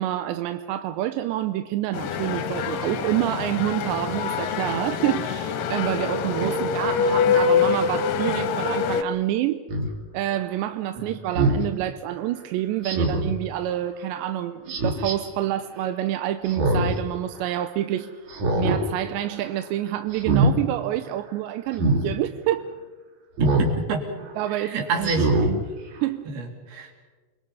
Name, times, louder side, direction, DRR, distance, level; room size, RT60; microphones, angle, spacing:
voice 1, 0.0-9.7 10.1-18.2 18.6-22.6 24.4-25.1 25.5-25.6 26.0-26.3, right 13 dB, 90° right, 9 dB, 3.1 m, -27 dB
sound 1, 1.9-9.0, left 6 dB, 65° left, 2.3 m, -25 dB
Speech synthesizer, 9.7-9.9 11.3-11.6 12.8-13.3 14.7-15.2 16.5-17.0 17.4-17.5 18.3-18.8 19.2-19.5 20.1-20.5 21.7-22.0 23.4-23.7 24.2-24.3 25.0-25.5 26.0-26.1, right 2 dB, 50° right, 3.8 m, -22 dB
voice 2, 23.4-24.0 24.5-25.5 26.3-26.9, right 3 dB, 65° right, 2 dB, 4.9 m, -28 dB
29.5 x 22.5 x 5.5 m, 1.3 s
omnidirectional pair, 4.9 m